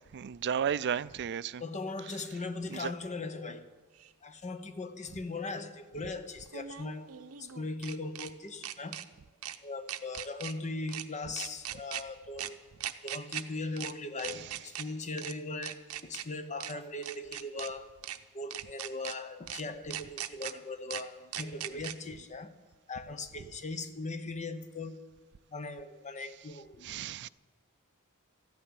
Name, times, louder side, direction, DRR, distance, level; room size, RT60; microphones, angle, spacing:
voice 1, 0.1-1.6 2.7-2.9 14.4-14.5 26.8-27.3, right 8 dB, 50° right, 0.4 m, -33 dB
voice 2, 1.6-3.7 4.2-7.1 7.4-9.0 9.6-12.6 13.0-17.9 18.3-22.6 22.9-25.1 25.5-26.9, left 3 dB, 35° left, 0.8 m, -39 dB
sound 1, 4.0-4.1 6.5-8.3 8.6-9.0 9.4-9.6 9.9-10.5 10.9-11.0 11.4-12.0 12.4-12.5 12.8-13.4 13.8-13.9 14.2-14.8 15.2-15.3 15.6-16.2 16.6-16.7 17.0-17.7 18.0-18.2 18.5-19.1 19.5-19.6 19.9-20.5 20.9-21.0 21.3-21.9, right 11 dB, 75° right, 0.7 m, -39 dB
13.5 x 9.1 x 9.7 m
head